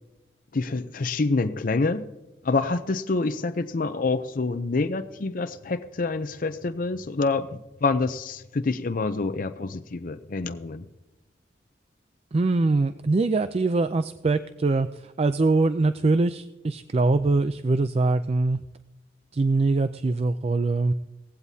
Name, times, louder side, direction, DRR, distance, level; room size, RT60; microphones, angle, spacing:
voice 1, 0.5-2.1 2.4-7.5 7.8-10.8, left 3 dB, 50° left, 10 dB, 0.6 m, -27 dB
voice 2, 12.3-18.6 19.3-20.9, right 3 dB, 35° right, 11 dB, 0.4 m, -23 dB
18.0 x 15.5 x 2.8 m, 1.0 s
head